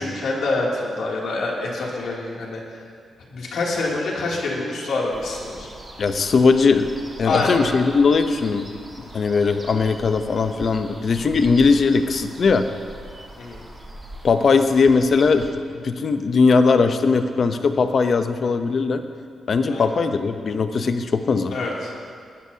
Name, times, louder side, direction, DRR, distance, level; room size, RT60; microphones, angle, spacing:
voice 1, 0.0-2.6 3.3-5.7 7.2-7.6 13.4-13.6 19.6-20.0 21.5-21.9, left 2 dB, 75° left, -4 dB, 2.7 m, -26 dB
sound 1, 5.1-15.5, right 1 dB, 25° right, 1.7 m, -41 dB
voice 2, 6.0-6.9 7.2-8.6 9.0-12.7 14.2-19.0 19.5-21.5, left 4 dB, 50° left, 8 dB, 0.7 m, -19 dB
19.0 x 12.5 x 2.8 m, 2.1 s
wide cardioid pair, 130°, 0 cm